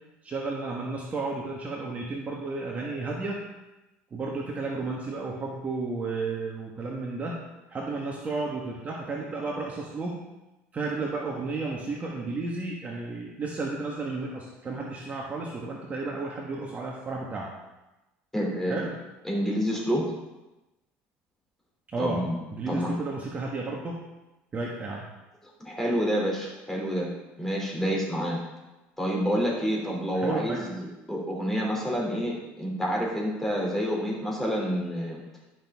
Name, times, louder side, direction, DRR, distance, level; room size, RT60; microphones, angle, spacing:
voice 1, 0.2-3.4 4.1-7.4 7.7-10.2 10.7-17.5 18.7-18.9 21.9-22.2 22.5-24.0 24.5-25.0 30.1-30.6, right 3 dB, 30° right, -2 dB, 1.5 m, -32 dB
voice 2, 18.3-18.8 19.2-20.0 22.0-22.4 22.7-23.0 25.6-27.1 27.4-28.4 29.0-35.2, equal, 5° left, -2 dB, 3.0 m, -28 dB
11.5 x 6.2 x 3.6 m, 1.0 s
supercardioid pair, 110°, 5 cm